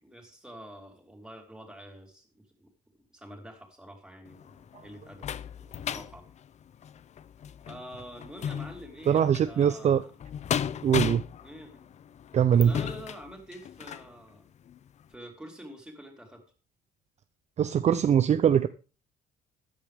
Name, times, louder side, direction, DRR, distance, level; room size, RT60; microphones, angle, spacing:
voice 1, 0.0-2.7 3.1-5.3 5.6-6.3 7.6-10.1 11.4-11.8 12.6-14.5 15.1-16.4, equal, 5° right, 1 dB, 4.0 m, -46 dB
sound 1, 4.3-14.1 14.7-14.8 15.1-15.2, left 9 dB, 45° left, 0.6 m, -36 dB
voice 2, 9.1-10.0 10.8-11.2 12.3-12.7 17.6-18.7, right 8 dB, 40° right, 12 dB, 0.6 m, -22 dB
14.5 x 10.5 x 3.6 m, 0.34 s
cardioid pair, 110°, 17 cm